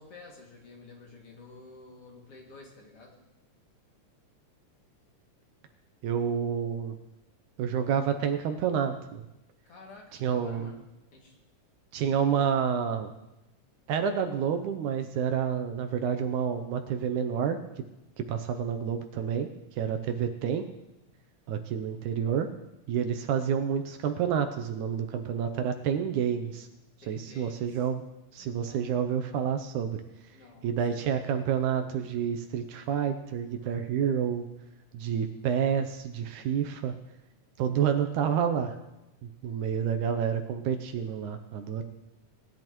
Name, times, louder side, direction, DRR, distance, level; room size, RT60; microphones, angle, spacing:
voice 1, 0.0-3.2 9.6-10.8 11.1-11.4 27.0-27.8 28.4-28.9 30.3-31.1, left 3 dB, 50° left, -1 dB, 3.1 m, -50 dB
voice 2, 6.0-7.0 7.6-9.3 10.2-10.7 11.9-13.1 13.9-17.8 18.2-20.7 21.5-22.5 22.9-26.7 27.1-28.0 28.3-30.0 30.6-34.5 34.9-36.9 37.6-38.8 39.2-41.8, right 8 dB, 75° right, 7 dB, 2.0 m, -29 dB
19.5 x 11.0 x 3.0 m, 0.94 s
omnidirectional pair, 3.7 m